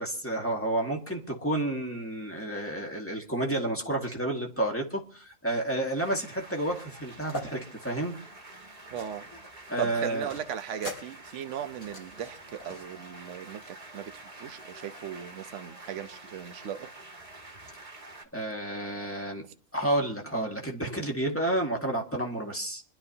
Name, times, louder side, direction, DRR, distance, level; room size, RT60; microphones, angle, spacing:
voice 1, 0.0-8.2 9.7-10.3 18.3-19.4 19.7-22.8, right 1 dB, 10° left, 1.9 m, -30 dB
sound 1, 5.9-18.2, right 2 dB, 25° right, 1.7 m, -48 dB
sound 2, 7.2-7.5 8.0-9.5 9.8-12.9, left 1 dB, 85° left, 5.1 m, -42 dB
voice 2, 8.9-9.3 9.8-16.9, right 9 dB, 60° right, 1.1 m, -38 dB
26.0 x 11.5 x 2.8 m
omnidirectional pair, 1.5 m